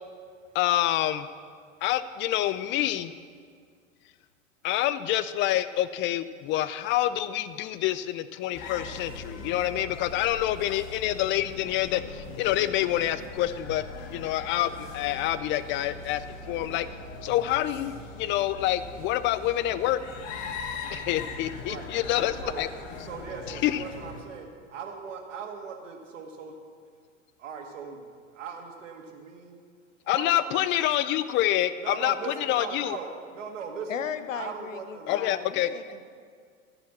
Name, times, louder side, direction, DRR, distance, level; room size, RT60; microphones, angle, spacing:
voice 1, 0.5-1.3 1.8-3.1 4.6-13.8 14.1-16.2 16.5-16.9 17.2-20.0 20.9-22.7 23.6-23.8 30.1-33.0 35.1-35.7, left 13 dB, 30° left, 14 dB, 0.4 m, -27 dB
sound 1, 8.5-24.2, left 3 dB, 50° left, 1.5 m, -41 dB
voice 2, 21.6-26.6 27.4-29.6 30.1-30.6 31.8-34.0 34.3-35.5, right 5 dB, 75° right, 3 dB, 1.7 m, -40 dB
voice 3, 33.9-36.1, left 8 dB, 85° left, 11 dB, 0.8 m, -36 dB
14.5 x 5.0 x 7.4 m, 2.1 s
hypercardioid pair, 90°, 37 cm